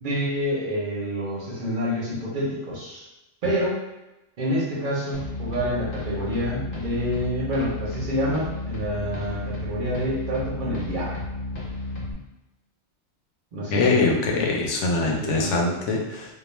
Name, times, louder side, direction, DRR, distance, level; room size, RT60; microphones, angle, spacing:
voice 1, 0.0-3.0 3.4-3.8 4.4-11.2 13.5-14.2 15.1-15.6, equal, 50° right, -5 dB, 0.7 m, -28 dB
sound 1, 5.1-12.1, left 2 dB, 55° left, 0.8 m, -32 dB
voice 2, 13.7-16.3, left 3 dB, 90° left, 0 dB, 0.9 m, -23 dB
2.3 x 2.2 x 3.0 m, 0.98 s
omnidirectional pair, 1.2 m